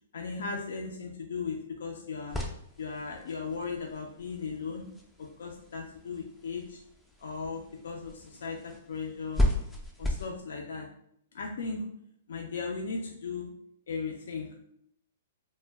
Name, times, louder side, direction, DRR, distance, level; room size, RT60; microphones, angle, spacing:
voice 1, 0.1-2.4 2.8-4.9 5.2-6.8 7.2-9.5 10.0-10.9 11.3-11.9 12.3-13.5 13.9-14.6, left 4 dB, 75° left, 0 dB, 0.4 m, -37 dB
sound 1, 2.3-10.3, left 1 dB, 5° left, 0.4 m, -35 dB
2.2 x 2.1 x 3.3 m, 0.70 s
hypercardioid pair, 150°, 0 cm